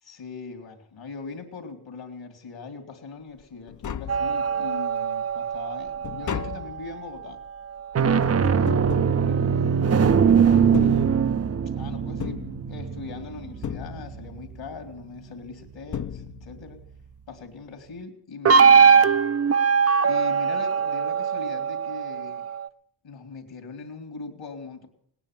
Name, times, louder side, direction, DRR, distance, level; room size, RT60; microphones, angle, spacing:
voice 1, 0.0-7.4 9.1-11.1 11.7-16.8 17.3-19.3 20.0-22.5 23.0-24.9, left 4 dB, 70° left, 4 dB, 2.7 m, -40 dB
Tap, 3.4-3.5 3.7-4.8 5.2-10.0 10.6-11.6 12.2-13.2 13.6-14.5 15.5-15.6 15.9-16.8 17.0-17.1, left 9 dB, 40° left, 0.6 m, -36 dB
sound 1, 4.1-6.7 7.8-14.6 18.4-22.7, right 6 dB, 35° right, 0.6 m, -21 dB
18.5 x 9.8 x 7.4 m, 0.65 s
cardioid pair, 85°, 47 cm